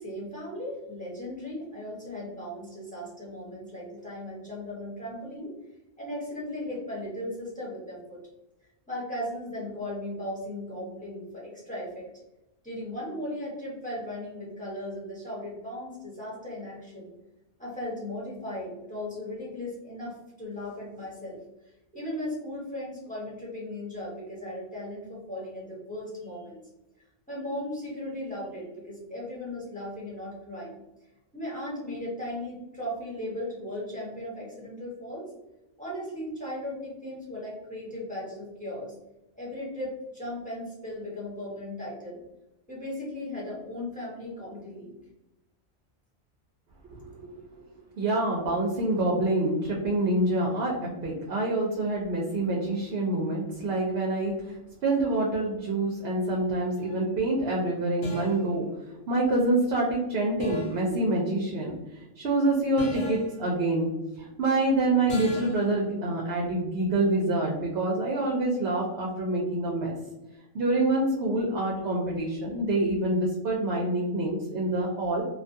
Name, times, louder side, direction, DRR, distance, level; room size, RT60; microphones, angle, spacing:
voice 1, 0.0-5.5 6.0-8.2 8.9-12.1 12.6-17.1 17.6-21.4 21.9-26.6 27.3-30.8 31.3-35.3 35.8-38.9 39.4-42.2 42.7-45.0, left 1 dB, 5° left, -7 dB, 0.9 m, -37 dB
voice 2, 46.8-47.7 48.0-50.8 51.0-58.7 59.1-63.9 64.2-70.0 70.5-75.2, right 2 dB, 65° right, -2 dB, 0.8 m, -26 dB
sound 1, 56.8-57.0 58.0-58.5 60.4-60.9 62.8-63.4 65.1-65.7, left 1 dB, 70° left, 1.1 m, -37 dB
2.5 x 2.3 x 2.6 m, 0.97 s
omnidirectional pair, 1.3 m